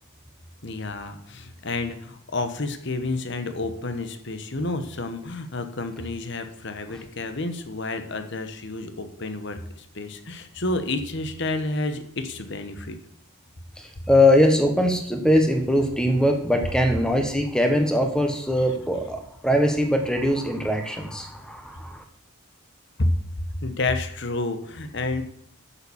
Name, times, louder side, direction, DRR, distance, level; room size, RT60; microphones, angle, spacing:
voice 1, 0.6-13.0 23.0-23.1 23.6-25.2, left 2 dB, 55° left, 8 dB, 1.1 m, -30 dB
voice 2, 13.8-22.0, left 1 dB, 5° left, 5 dB, 1.2 m, -21 dB
8.6 x 7.2 x 7.2 m, 0.69 s
head